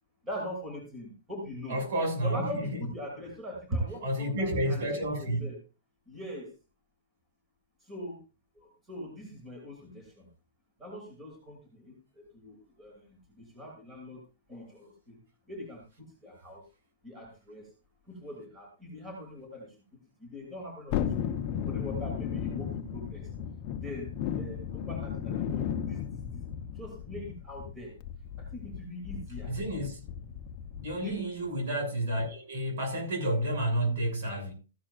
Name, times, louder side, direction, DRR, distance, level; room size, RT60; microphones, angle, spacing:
voice 1, 0.2-1.8 2.2-5.6 6.1-6.5 7.8-8.2 8.6-10.3 10.8-14.2 14.5-15.2 15.5-15.8 16.2-16.6 17.0-17.7 18.1-19.7 20.2-21.4 21.6-23.3 23.8-24.1 24.4-26.4 26.7-27.9 28.4-29.5 31.0-31.3, equal, 10° right, 2.7 m, -41 dB
voice 2, 1.7-2.8 4.0-5.5 29.5-30.0 30.8-34.5, right 1 dB, 55° right, 6.4 m, -30 dB
Thunderstorm, 20.9-31.1 31.5-31.6, left 8 dB, 30° left, 0.9 m, -35 dB
14.5 x 11.0 x 2.5 m
hypercardioid pair, 170°, 0 cm